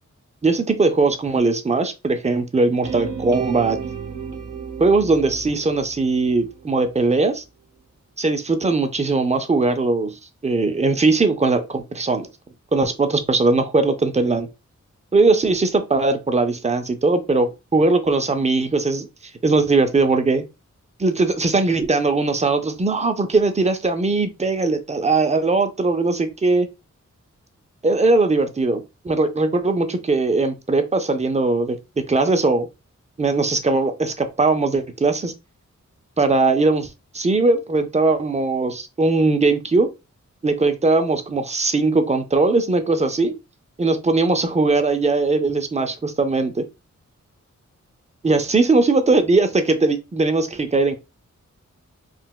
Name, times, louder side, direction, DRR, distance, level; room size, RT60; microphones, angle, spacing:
voice 1, 0.4-3.8 4.8-7.4 8.2-10.2 10.4-12.3 12.7-14.5 15.1-19.1 19.4-20.4 21.0-26.7 27.8-32.7 33.2-35.3 36.2-39.9 40.4-43.3 43.8-46.6 48.2-50.9, right 3 dB, 25° right, 0.4 m, -20 dB
sound 1, 2.8-6.9, right 6 dB, 85° right, 0.6 m, -33 dB
3.8 x 2.2 x 2.2 m
wide cardioid pair, 115°, 30 cm